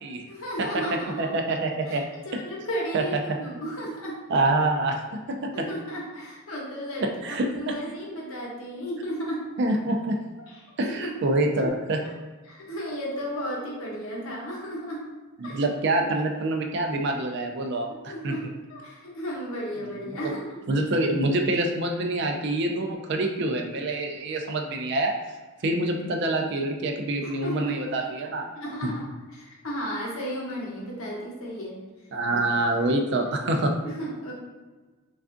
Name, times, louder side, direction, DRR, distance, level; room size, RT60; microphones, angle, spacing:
voice 1, 0.3-1.4 1.9-2.0 2.2-4.2 5.5-9.4 10.5-10.6 10.8-11.2 12.5-15.1 15.4-15.6 18.0-20.6 27.2-27.8 28.5-31.8 33.8-34.3, equal, 65° left, -3 dB, 0.8 m, -34 dB
voice 2, 1.2-2.0 2.3-2.4 2.9-3.4 4.3-5.0 5.3-5.7 7.0-7.7 9.6-10.2 10.8-12.0 15.4-18.4 19.9-20.3 20.7-25.1 25.6-28.5 32.1-33.7, right 2 dB, 50° right, 3 dB, 0.3 m, -26 dB
3.4 x 2.3 x 2.5 m, 1.3 s
head